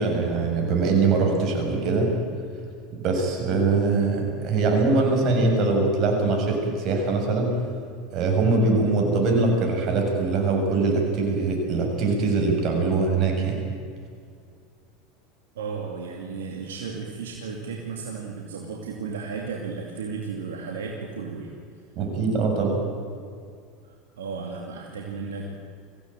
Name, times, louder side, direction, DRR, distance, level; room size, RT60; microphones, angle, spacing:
voice 1, 0.0-2.1 3.0-7.5 8.1-13.6 22.0-22.8, right 3 dB, 50° right, 1 dB, 7.1 m, -22 dB
voice 2, 15.5-21.5 23.8-25.5, right 5 dB, 85° right, 1 dB, 2.6 m, -34 dB
23.5 x 16.5 x 9.2 m, 2.2 s
hypercardioid pair, 90°, 0 cm